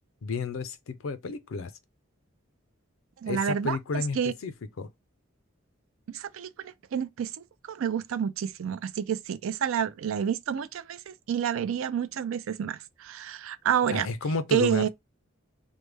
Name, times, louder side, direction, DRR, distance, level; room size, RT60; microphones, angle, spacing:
voice 1, 0.2-1.7 3.3-4.9 13.9-14.9, left 4 dB, 85° left, 0.5 m, -32 dB
voice 2, 3.2-3.8 4.2-4.3 6.1-7.3 7.7-14.1 14.5-14.9, right 8 dB, 85° right, 0.4 m, -29 dB
3.2 x 2.1 x 3.2 m
head